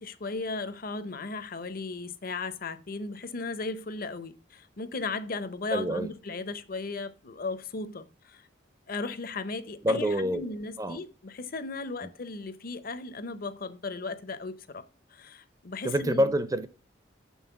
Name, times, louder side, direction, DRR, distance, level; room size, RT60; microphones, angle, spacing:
voice 1, 0.0-8.4 8.9-14.8 15.1-16.3, left 3 dB, 50° left, 0.7 m, -36 dB
voice 2, 5.7-6.1 9.8-10.4 10.8-11.0 15.8-16.7, equal, 20° right, 0.5 m, -26 dB
7.6 x 5.5 x 5.8 m
head